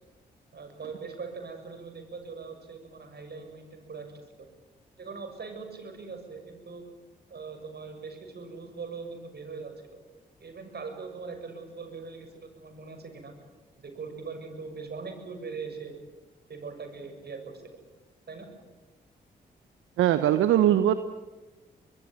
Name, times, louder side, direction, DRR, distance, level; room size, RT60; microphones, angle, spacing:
voice 1, 0.5-4.2 5.0-6.8 7.3-10.0 10.4-13.3 13.8-15.9 16.5-17.6 18.3-18.5, right 4 dB, 50° right, 6 dB, 6.9 m, -41 dB
voice 2, 20.0-20.9, right 11 dB, 75° right, 12 dB, 1.0 m, -21 dB
25.0 x 21.5 x 9.2 m, 1.2 s
hypercardioid pair, 40°, 21 cm